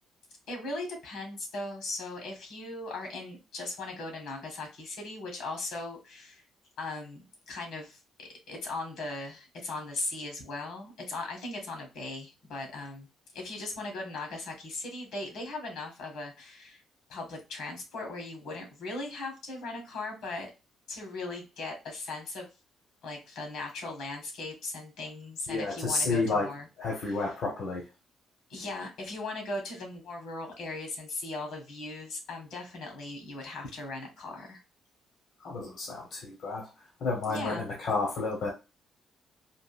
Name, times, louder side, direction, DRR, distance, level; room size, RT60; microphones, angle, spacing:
voice 1, 0.5-6.4 6.8-13.1 13.3-16.8 17.1-20.5 20.9-22.5 23.0-27.4 28.5-34.6 37.2-37.7, left 2 dB, 80° left, 2 dB, 1.5 m, -38 dB
voice 2, 25.5-26.5 26.8-27.8 35.4-36.7 37.0-38.5, left 3 dB, 65° left, -1 dB, 1.0 m, -30 dB
3.8 x 2.5 x 2.5 m, 0.27 s
cardioid pair, 90°, 0 cm